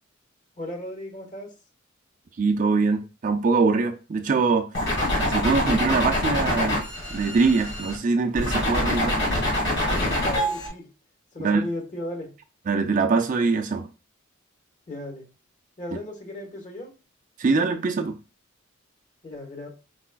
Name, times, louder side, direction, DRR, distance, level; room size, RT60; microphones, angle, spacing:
voice 1, 0.6-1.5 10.1-10.9 11.3-12.3 14.9-15.3 15.8-16.9 19.2-19.7, left 1 dB, 40° left, 1.2 m, -35 dB
voice 2, 2.4-4.7 5.2-6.8 7.1-9.3 11.4-11.6 12.7-13.9 17.4-18.2, right 4 dB, 40° right, 0.4 m, -23 dB
sound 1, 4.7-8.0 8.4-10.7, left 1 dB, 60° left, 2.3 m, -25 dB
4.7 x 4.1 x 2.2 m
head